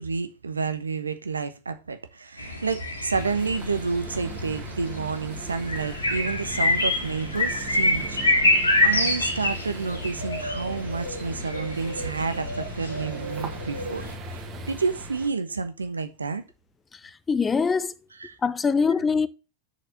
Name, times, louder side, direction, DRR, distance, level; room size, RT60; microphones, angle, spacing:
voice 1, 0.0-16.4 18.3-18.4, right 4 dB, 75° right, 1.1 m, -30 dB
sound 1, 2.4-14.2, left 1 dB, 80° left, 2.3 m, -27 dB
sound 2, 3.1-15.3, right 2 dB, 30° right, 2.0 m, -39 dB
voice 2, 16.9-17.9 18.4-19.3, left 5 dB, 15° left, 0.5 m, -23 dB
6.6 x 6.4 x 6.5 m
figure-of-eight pair, 90°, 0 cm